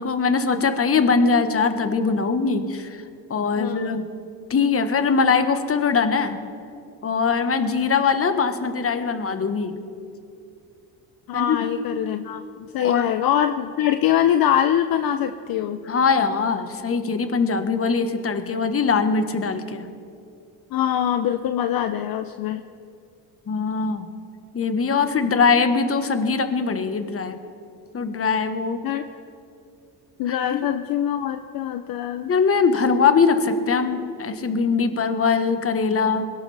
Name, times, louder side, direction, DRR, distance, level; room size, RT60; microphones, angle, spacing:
voice 1, 0.0-3.0 3.3-4.1 4.5-6.4 7.0-9.8 11.3-11.7 12.8-13.1 15.9-19.9 23.5-24.1 24.5-27.4 27.9-28.8 30.3-30.6 32.3-36.3, left 5 dB, 35° left, 8 dB, 1.4 m, -22 dB
voice 2, 3.6-4.0 11.3-15.8 20.7-22.6 28.8-29.0 30.2-32.3, left 10 dB, 55° left, 9 dB, 0.7 m, -23 dB
22.0 x 18.0 x 3.4 m, 2.5 s
supercardioid pair, 90°, 41 cm